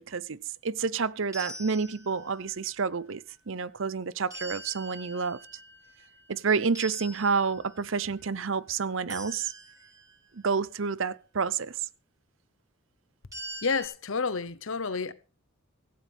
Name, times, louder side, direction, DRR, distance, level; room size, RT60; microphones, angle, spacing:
voice 1, 0.0-5.4 6.3-9.5 10.3-11.8, right 5 dB, 60° right, 0.7 m, -29 dB
sound 1, 1.3-2.5 4.3-6.3 6.7-8.0 9.1-10.1 13.3-13.9, right 1 dB, 15° right, 7.5 m, -44 dB
voice 2, 13.6-15.1, left 4 dB, 65° left, 0.9 m, -30 dB
16.0 x 15.5 x 3.5 m
head